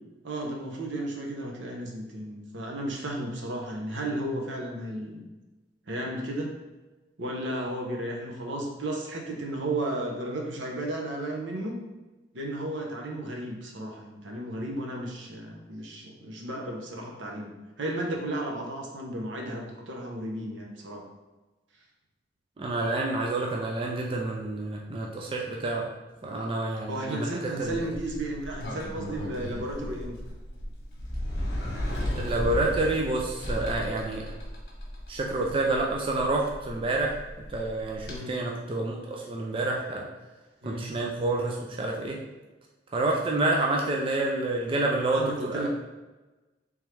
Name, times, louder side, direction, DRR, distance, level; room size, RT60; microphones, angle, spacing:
voice 1, 0.2-5.2 5.9-6.5 7.2-11.8 12.3-17.5 17.8-21.0 26.9-30.1 38.1-38.3 40.6-40.9 45.1-45.7, right 1 dB, 80° right, 0 dB, 0.8 m, -34 dB
voice 2, 22.6-25.9 26.2-27.9 32.1-34.3 35.1-37.2 37.5-40.1 40.6-42.2 42.9-45.7, right 2 dB, 30° right, -1 dB, 0.4 m, -28 dB
Sliding door, 27.6-38.2, left 1 dB, 60° left, 1.0 m, -35 dB
3.5 x 3.1 x 3.3 m, 1.2 s
head